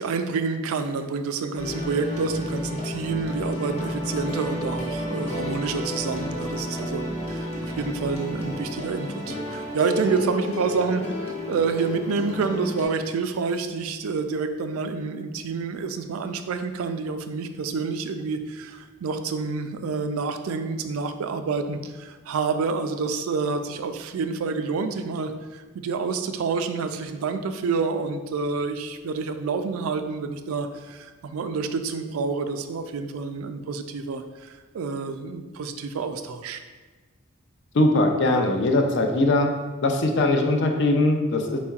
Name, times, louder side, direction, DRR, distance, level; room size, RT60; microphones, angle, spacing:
voice 1, 0.0-7.0 7.3-36.6, right 4 dB, 85° right, 8 dB, 0.4 m, -28 dB
sound 1, 1.6-12.8, left 1 dB, 30° left, 0.8 m, -31 dB
voice 2, 37.7-39.5 39.8-41.6, left 2 dB, 55° left, 4 dB, 0.5 m, -21 dB
4.4 x 4.2 x 2.4 m, 1.3 s
head